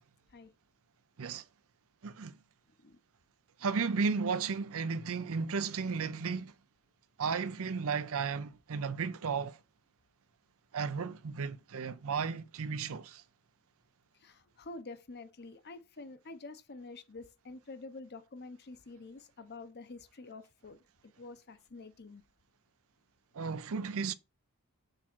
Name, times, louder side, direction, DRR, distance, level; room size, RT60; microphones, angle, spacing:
voice 1, 2.0-2.3 3.6-6.5 7.2-9.6 10.7-13.2 23.3-24.1, right 5 dB, 70° right, 0.6 m, -34 dB
voice 2, 14.2-20.8 21.0-22.2, left 3 dB, 50° left, 0.8 m, -48 dB
6.6 x 3.6 x 6.0 m
head